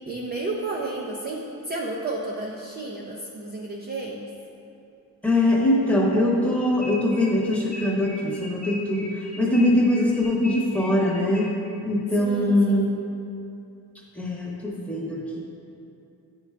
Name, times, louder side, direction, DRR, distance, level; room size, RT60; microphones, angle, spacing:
voice 1, 0.1-4.2 12.2-12.9, right 2 dB, 30° right, -2 dB, 0.4 m, -32 dB
voice 2, 5.2-11.5 11.8-12.9 14.2-15.4, left 1 dB, 5° left, -4 dB, 0.9 m, -22 dB
sound 1, 6.5-11.8, left 1 dB, 25° left, 0.5 m, -40 dB
9.7 x 4.5 x 2.4 m, 2.7 s
wide cardioid pair, 150°, 37 cm